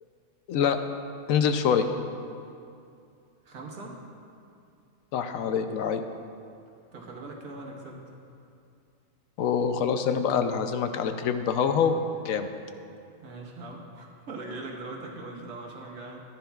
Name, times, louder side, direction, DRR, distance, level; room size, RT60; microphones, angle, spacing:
voice 1, 1.3-1.8 5.1-6.0 9.4-11.9 12.2-12.5, left 7 dB, 75° left, 8 dB, 1.0 m, -25 dB
voice 2, 3.5-4.0 6.9-8.0 13.2-16.2, right 2 dB, 80° right, -1 dB, 1.6 m, -40 dB
14.0 x 10.0 x 2.3 m, 2.5 s
omnidirectional pair, 1.4 m